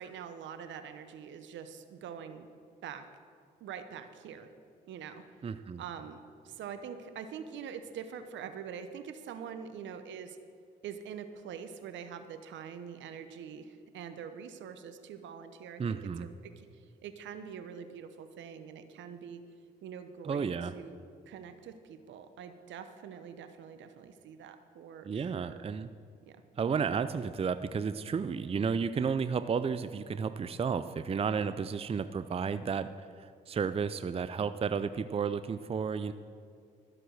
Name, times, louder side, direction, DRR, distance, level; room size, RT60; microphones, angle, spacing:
voice 1, 0.0-2.5 2.8-3.1 3.6-4.5 4.9-5.2 5.8-10.4 10.8-16.7 17.0-19.4 19.8-21.0 21.3-25.6 26.3-26.4 31.5-31.6, right 7 dB, 70° right, 9 dB, 0.9 m, -44 dB
voice 2, 5.4-5.8 15.8-16.3 20.2-20.8 25.0-25.9 26.6-36.1, right 6 dB, 30° right, 12 dB, 0.5 m, -32 dB
13.0 x 7.6 x 6.5 m, 2.3 s
hypercardioid pair, 55°, 20 cm